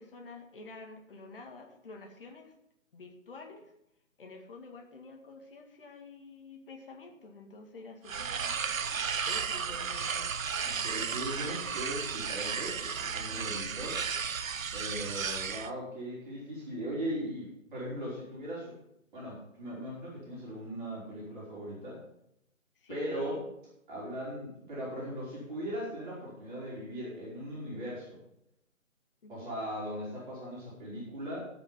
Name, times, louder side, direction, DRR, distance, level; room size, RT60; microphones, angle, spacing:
voice 1, 0.0-2.5 2.9-3.7 4.2-8.6 9.3-10.3 13.5-13.9 22.8-23.5 29.2-29.5, left 3 dB, 40° left, 2 dB, 2.1 m, -49 dB
sound 1, 8.1-15.7, right 6 dB, 75° right, 0.8 m, -34 dB
voice 2, 10.6-14.0 14.7-18.7 19.1-22.0 22.9-23.4 23.9-28.2 29.3-31.4, equal, 35° right, -7 dB, 5.2 m, -39 dB
16.0 x 5.8 x 5.8 m, 0.78 s
figure-of-eight pair, 160°, 40 cm